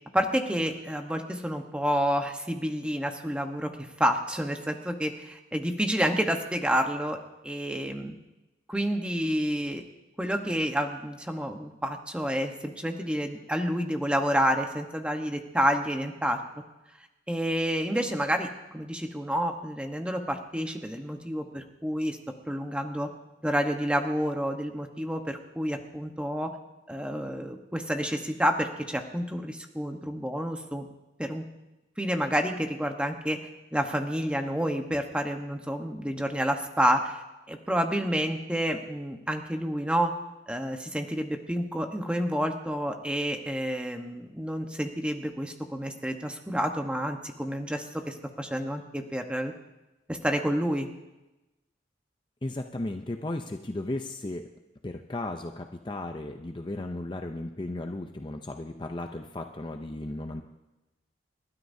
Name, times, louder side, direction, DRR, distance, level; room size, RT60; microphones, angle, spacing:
voice 1, 0.1-7.2 7.4-8.1 8.7-9.8 10.2-16.4 17.3-22.2 22.5-23.1 23.4-26.5 26.9-30.8 31.2-31.4 32.0-33.4 33.7-40.1 40.5-49.5 50.1-50.9, equal, 5° right, 4 dB, 1.1 m, -29 dB
voice 2, 52.4-54.5 54.8-60.4, left 2 dB, 25° left, 5 dB, 0.5 m, -35 dB
29.0 x 12.5 x 2.7 m, 1.0 s
head